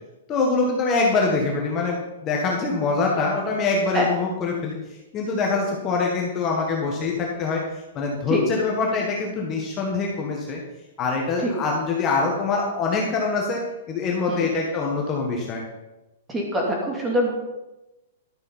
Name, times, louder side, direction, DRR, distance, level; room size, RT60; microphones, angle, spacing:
voice 1, 0.3-7.6 7.9-10.6 11.0-13.6 13.9-15.6, left 4 dB, 25° left, -1 dB, 1.5 m, -24 dB
voice 2, 16.3-17.3, equal, 15° right, -1 dB, 2.5 m, -24 dB
12.0 x 6.4 x 5.6 m, 1.0 s
hypercardioid pair, 160°, 0 cm